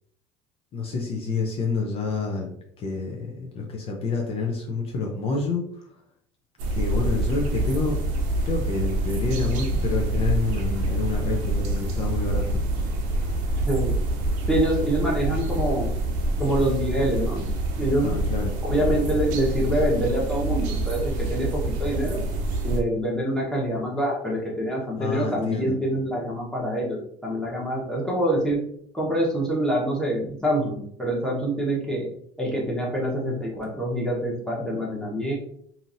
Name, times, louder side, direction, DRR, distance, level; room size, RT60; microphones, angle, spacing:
voice 1, 0.7-2.5 2.8-5.9 6.7-8.0 8.4-12.6 13.2-13.3 18.0-18.5 25.0-25.7, left 4 dB, 45° left, 0 dB, 0.6 m, -28 dB
sound 1, 6.6-22.8, right 1 dB, 70° right, 0.7 m, -26 dB
voice 2, 14.5-15.9 16.4-17.4 17.7-18.2 18.6-21.5 21.8-22.2 22.6-27.0 27.2-28.6 28.9-32.1 32.4-35.3, right 1 dB, 5° left, -4 dB, 1.1 m, -25 dB
2.8 x 2.6 x 2.6 m, 0.68 s
supercardioid pair, 100°, 14 cm